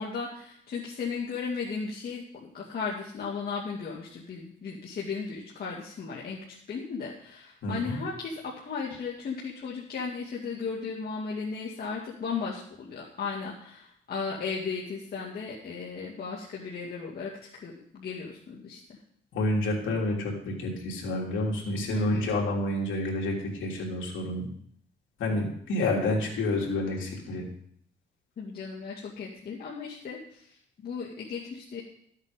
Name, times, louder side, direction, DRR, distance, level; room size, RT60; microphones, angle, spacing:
voice 1, 0.0-6.4 6.7-18.8 21.9-22.3 28.4-31.8, left 5 dB, 50° left, -4 dB, 2.2 m, -36 dB
voice 2, 7.6-8.0 19.3-24.5 25.2-27.4, left 2 dB, 75° left, -1 dB, 3.3 m, -29 dB
13.5 x 8.3 x 5.2 m, 0.65 s
cardioid pair, 90°, 20 cm